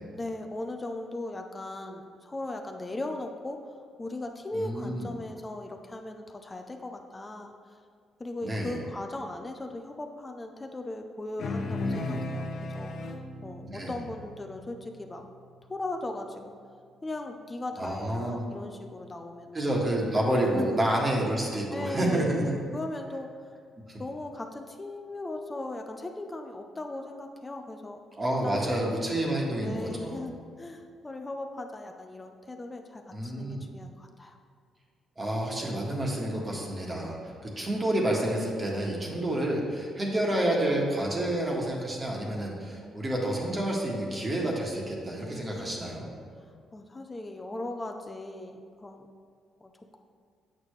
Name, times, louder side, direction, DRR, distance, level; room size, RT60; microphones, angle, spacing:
voice 1, 0.1-3.6 4.0-7.5 8.2-15.2 15.7-16.5 17.0-19.7 20.4-20.8 21.7-23.3 24.0-28.0 28.2-29.1 29.6-34.4 45.2-46.0 46.7-49.1 49.6-50.0, left 2 dB, 20° left, 4 dB, 0.6 m, -38 dB
voice 2, 4.5-5.1 8.4-8.7 11.8-12.2 13.7-13.9 17.8-18.4 19.5-22.5 28.2-30.2 33.1-33.6 35.2-46.1, right 1 dB, 30° right, -2 dB, 1.5 m, -29 dB
sound 1, 11.4-16.1, left 2 dB, 65° left, 0.8 m, -37 dB
8.7 x 6.7 x 3.2 m, 2.1 s
cardioid pair, 90°, 0 cm